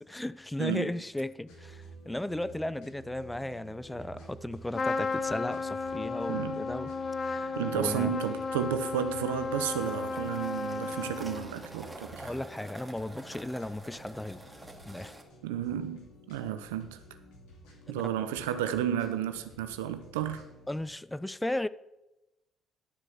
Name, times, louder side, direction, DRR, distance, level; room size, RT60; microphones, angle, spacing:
voice 1, 0.0-6.9 7.2-8.1 12.2-14.4 14.9-15.2 17.9-18.0 20.7-21.7, left 1 dB, 10° left, 0.5 m, -35 dB
voice 2, 0.6-0.9 6.3-6.6 7.6-12.3 15.4-17.0 17.9-20.4, right 10 dB, 90° right, 0.6 m, -32 dB
sound 1, 1.5-20.9, right 2 dB, 75° left, 2.7 m, -52 dB
Trumpet, 4.7-11.7, left 4 dB, 40° left, 1.1 m, -34 dB
sound 2, 9.7-15.2, right 2 dB, 15° right, 2.1 m, -48 dB
11.5 x 4.9 x 7.4 m
hypercardioid pair, 55°, 0 cm